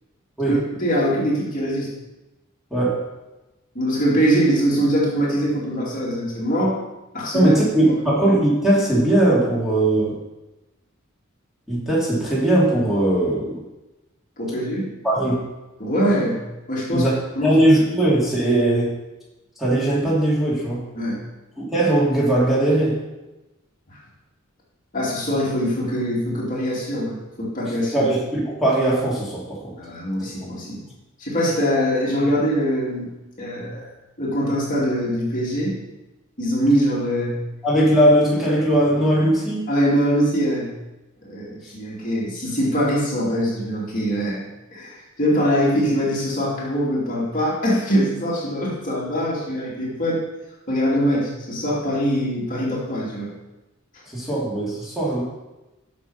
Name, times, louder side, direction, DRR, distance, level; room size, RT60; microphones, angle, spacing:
voice 1, 0.5-1.9 3.7-6.8 7.1-7.5 14.4-14.9 15.8-17.1 17.3-17.6 20.9-21.2 24.9-28.1 29.8-30.8 31.2-33.1 33.4-33.9 34.2-35.8 36.4-37.4 39.7-40.7 41.2-44.5 44.7-50.2 50.7-53.3 54.3-54.4, equal, 40° left, -5 dB, 2.6 m, -23 dB
voice 2, 2.7-3.1 7.3-10.2 11.7-13.6 15.0-15.5 16.9-17.1 17.4-18.9 19.6-20.8 21.6-23.0 27.9-29.7 30.4-30.5 37.6-39.7 54.1-55.2, right 1 dB, ahead, -7 dB, 2.8 m, -19 dB
8.3 x 6.7 x 5.6 m, 1.0 s
head